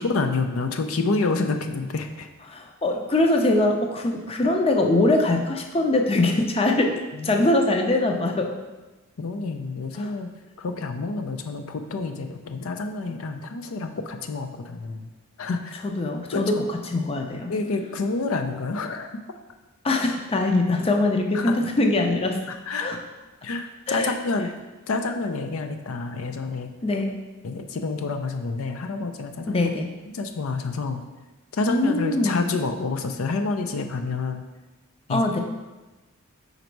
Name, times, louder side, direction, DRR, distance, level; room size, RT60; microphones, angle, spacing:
voice 1, 0.0-2.3 7.1-7.4 9.2-10.3 10.6-15.1 15.4-15.9 16.3-16.7 17.5-19.1 21.3-21.6 22.5-23.0 23.4-24.5 24.9-26.7 27.4-29.7 30.1-31.0 31.5-34.4 35.1-35.3, left 3 dB, 80° left, 6 dB, 0.5 m, -28 dB
voice 2, 2.5-8.5 9.9-10.1 15.8-17.5 19.8-22.4 22.8-23.0 23.9-24.1 26.8-27.2 29.5-29.9 31.7-32.4 35.1-35.4, left 2 dB, 25° left, 3 dB, 0.5 m, -22 dB
5.2 x 4.0 x 4.5 m, 1.1 s
head